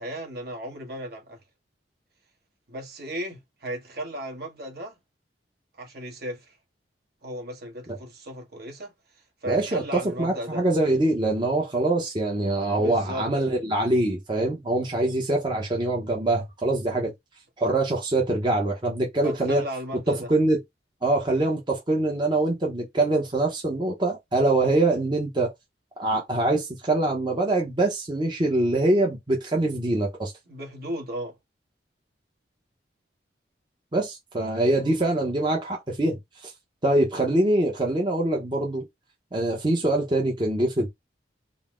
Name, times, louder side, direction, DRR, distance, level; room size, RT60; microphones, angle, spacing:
voice 1, 0.0-1.4 2.7-5.0 5.8-6.6 7.2-10.6 12.7-13.3 19.2-20.3 30.5-31.3, equal, 60° right, 1.2 m, -35 dB
voice 2, 9.5-17.1 17.6-19.6 20.1-20.6 21.0-25.5 26.0-30.3 33.9-36.5 36.8-38.9 39.3-40.9, right 2 dB, 25° right, 0.8 m, -24 dB
3.9 x 2.0 x 3.6 m
head